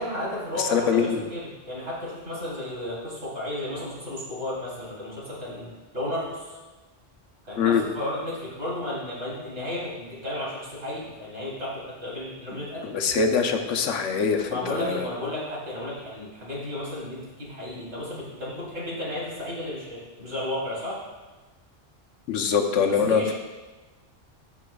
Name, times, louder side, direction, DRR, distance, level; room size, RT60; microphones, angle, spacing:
voice 1, 0.0-6.5 7.4-12.9 14.5-21.0 23.0-23.3, left 1 dB, 65° right, -6 dB, 3.4 m, -33 dB
voice 2, 0.6-1.2 7.6-7.8 12.5-15.1 22.3-23.3, left 6 dB, 85° left, 5 dB, 1.1 m, -24 dB
14.5 x 5.9 x 2.3 m, 1.2 s
omnidirectional pair, 1.2 m